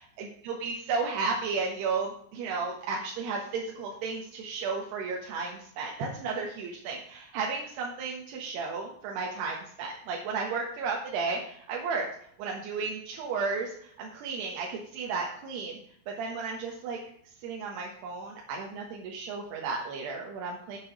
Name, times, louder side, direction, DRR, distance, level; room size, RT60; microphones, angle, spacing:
voice 1, 0.0-12.1 12.4-15.8 16.1-17.0 17.4-20.8, right 4 dB, 65° right, -1 dB, 3.0 m, -33 dB
8.8 x 7.2 x 6.5 m, 0.64 s
omnidirectional pair, 5.9 m